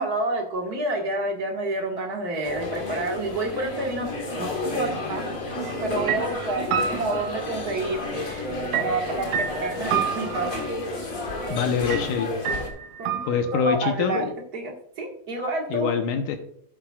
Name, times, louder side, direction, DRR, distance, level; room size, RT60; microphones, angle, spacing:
voice 1, 0.0-5.2 5.8-10.5 11.5-11.7 13.0-14.2 14.5-15.9, right 2 dB, 40° right, 0 dB, 1.4 m, -29 dB
sound 1, 2.4-12.7, left 2 dB, 50° left, 1.0 m, -31 dB
sound 2, 5.6-5.8 6.1-8.0 8.7-10.8 11.9-12.1 12.4-13.8, right 8 dB, 70° right, 2.0 m, -29 dB
voice 2, 11.5-12.3 13.3-14.3 15.7-16.4, left 7 dB, 75° left, 6 dB, 2.4 m, -24 dB
12.5 x 8.8 x 2.4 m, 0.63 s
omnidirectional pair, 3.9 m